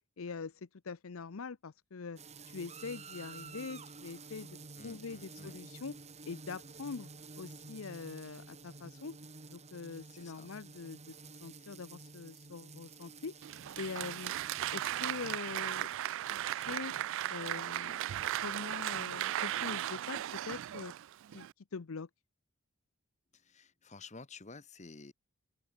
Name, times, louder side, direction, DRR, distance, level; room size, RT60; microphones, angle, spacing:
voice 1, 0.2-2.2 2.5-4.6 4.8-6.0 6.3-7.1 7.4-9.2 9.5-11.1 11.4-13.3 13.8-14.3 14.7-15.9 16.2-17.0 17.3-18.1 18.4-20.9 21.3-22.1, left 4 dB, 65° left, 0.6 m, -43 dB
sound 1, 2.2-15.4, right 4 dB, 30° right, 2.2 m, -51 dB
voice 2, 4.8-5.6 10.1-10.5 23.3-25.1, left 3 dB, 35° left, 1.4 m, -52 dB
Applause, 13.4-21.5, right 12 dB, 60° right, 0.3 m, -37 dB
open air
head